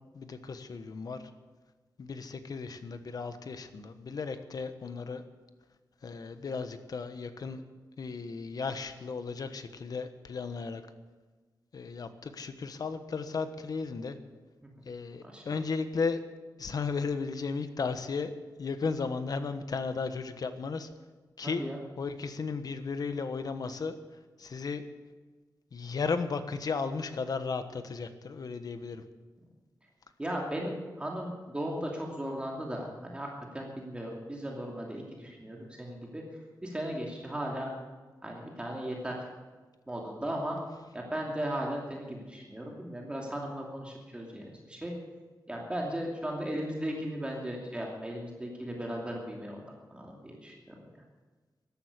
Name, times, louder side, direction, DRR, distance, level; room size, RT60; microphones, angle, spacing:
voice 1, 0.1-1.2 2.0-5.2 6.0-7.6 8.0-10.8 11.7-14.2 14.8-16.2 16.6-18.3 18.6-20.9 21.4-21.6 22.0-23.9 24.4-24.8 25.7-29.0, left 4 dB, 60° left, 10 dB, 1.2 m, -35 dB
voice 2, 21.4-21.8 30.2-36.2 36.6-37.7 38.2-39.2 39.9-40.6 40.9-44.9 45.5-49.6 49.9-50.8, right 1 dB, 15° right, -1 dB, 2.7 m, -36 dB
14.0 x 12.0 x 8.2 m, 1.3 s
wide cardioid pair, 120°, 7 cm